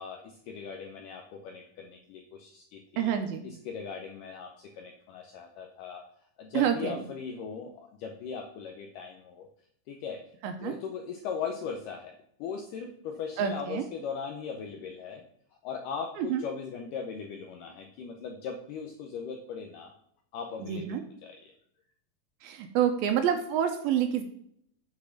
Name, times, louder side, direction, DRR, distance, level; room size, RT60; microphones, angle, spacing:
voice 1, 0.0-3.2 3.4-6.0 6.4-9.5 9.9-10.2 10.6-12.1 12.4-15.2 15.6-19.9 20.3-21.5, left 6 dB, 80° left, 4 dB, 2.0 m, -39 dB
voice 2, 3.0-3.4 6.5-6.9 10.4-10.7 13.4-13.9 16.2-16.4 20.6-21.0 22.4-24.2, right 9 dB, 80° right, 6 dB, 2.4 m, -28 dB
8.3 x 4.2 x 6.4 m, 0.70 s
omnidirectional pair, 4.5 m